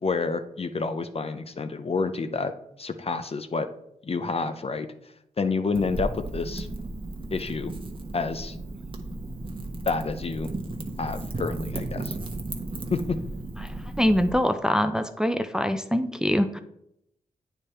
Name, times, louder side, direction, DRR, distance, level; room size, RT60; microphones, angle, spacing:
voice 1, 0.0-2.5 2.8-3.7 4.0-4.9 5.4-6.7 7.3-7.7 8.1-8.6 9.9-10.5 11.0-12.1 12.9-13.2, left 4 dB, 40° left, 9 dB, 0.6 m, -28 dB
Wind / Fire, 5.7-14.3, right 2 dB, 35° right, 1.1 m, -35 dB
voice 2, 14.0-16.6, equal, 5° right, 8 dB, 0.5 m, -24 dB
8.9 x 3.5 x 4.3 m, 0.77 s
cardioid pair, 60°, 16 cm